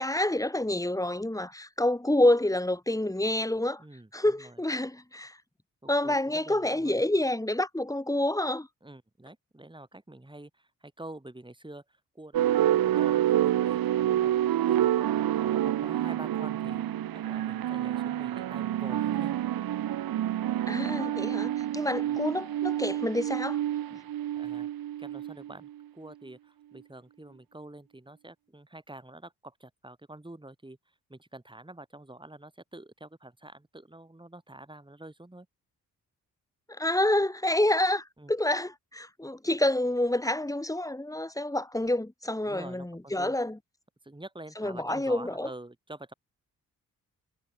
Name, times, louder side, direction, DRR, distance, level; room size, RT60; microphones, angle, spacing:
voice 1, 0.0-3.8 4.1-5.3 5.9-8.7 20.7-23.6 36.8-43.6 44.6-45.5, left 1 dB, 10° left, 3.6 m, -28 dB
voice 2, 3.8-4.6 5.8-7.0 8.8-14.3 14.6-16.8 17.1-19.4 22.1-22.2 24.4-24.7 25.0-30.8 31.1-35.5 38.2-38.3 42.4-43.3 44.0-46.1, right 1 dB, 15° right, 7.9 m, -47 dB
sound 1, 12.3-25.7, right 12 dB, 80° right, 2.1 m, -28 dB
supercardioid pair, 55°, 35 cm